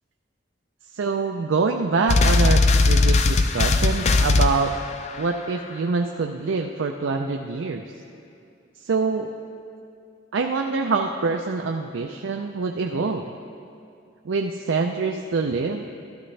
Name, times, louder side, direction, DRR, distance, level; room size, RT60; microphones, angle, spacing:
voice 1, 0.9-4.7 5.2-7.9 8.8-9.3 10.3-13.3 14.2-15.9, right 4 dB, 85° right, 3 dB, 0.5 m, -25 dB
sound 1, 2.1-5.3, left 3 dB, 35° left, 0.4 m, -19 dB
12.5 x 12.5 x 3.3 m, 2.5 s
head